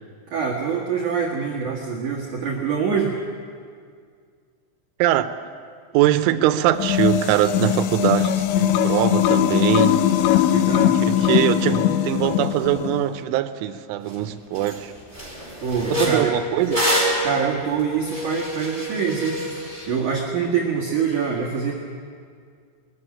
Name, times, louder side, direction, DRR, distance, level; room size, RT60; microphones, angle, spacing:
voice 1, 0.3-3.1 10.5-11.0 15.6-16.4 17.2-19.4 19.9-21.7, right 6 dB, 55° right, -2 dB, 2.6 m, -25 dB
voice 2, 5.0-5.3 5.9-10.1 10.9-14.9 15.9-16.9, right 13 dB, 85° right, 11 dB, 3.2 m, -22 dB
sound 1, 6.7-13.1, left 11 dB, 80° left, 3.0 m, -20 dB
sound 2, 14.1-14.2 14.5-14.8 15.1-19.9, equal, 5° left, 4.9 m, -26 dB
22.0 x 14.5 x 9.8 m, 2.1 s
omnidirectional pair, 5.6 m